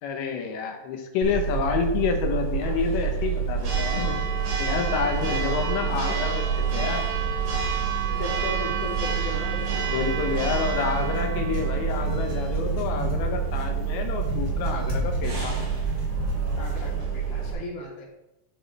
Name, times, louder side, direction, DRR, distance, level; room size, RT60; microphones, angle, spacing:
voice 1, 0.0-4.2 4.6-6.5 6.7-7.1 9.9-15.6, left 6 dB, 75° left, 4 dB, 3.3 m, -28 dB
Church bell, 1.2-17.5, right 7 dB, 75° right, 6.6 m, -27 dB
voice 2, 8.1-9.8 16.6-18.1, left 2 dB, 55° left, -6 dB, 5.2 m, -36 dB
sound 1, 10.0-17.0, left 4 dB, 20° right, 2.6 m, -34 dB
12.5 x 8.4 x 3.4 m, 0.93 s
omnidirectional pair, 5.4 m